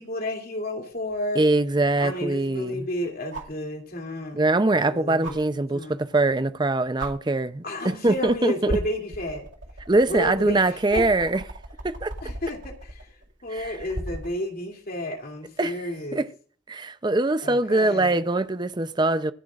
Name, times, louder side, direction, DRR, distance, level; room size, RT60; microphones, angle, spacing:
voice 1, 0.0-1.5 2.0-6.1 7.6-9.5 10.1-11.1 12.2-13.0 13.4-16.2 17.4-18.2, left 1 dB, 50° left, 2.9 m, -32 dB
sound 1, 1.1-1.2 3.3-3.6 5.2-5.4 6.5-6.6 7.0-7.1 8.0-8.3 8.7-14.3 16.0-16.1, right 1 dB, 80° right, 2.2 m, -36 dB
voice 2, 1.4-2.9 4.3-8.8 9.9-11.4 11.8-12.1 13.5-13.7 15.6-15.8 16.1-16.3 16.7-19.3, right 2 dB, 25° right, 0.6 m, -23 dB
25.5 x 10.5 x 2.5 m
head